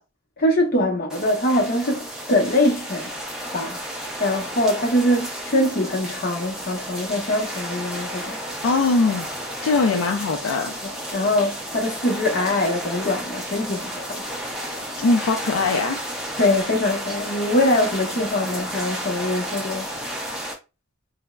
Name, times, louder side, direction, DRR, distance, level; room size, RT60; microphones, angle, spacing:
voice 1, 0.4-3.1 3.5-3.8 4.2-8.4 11.1-14.2 16.4-19.9, left 1 dB, 45° left, 0.7 m, -23 dB
sound 1, 1.1-20.5, equal, 5° right, 0.5 m, -32 dB
voice 2, 8.6-9.3 9.6-10.7 15.0-16.0, left 3 dB, 75° left, 0.4 m, -21 dB
3.4 x 2.0 x 2.2 m
head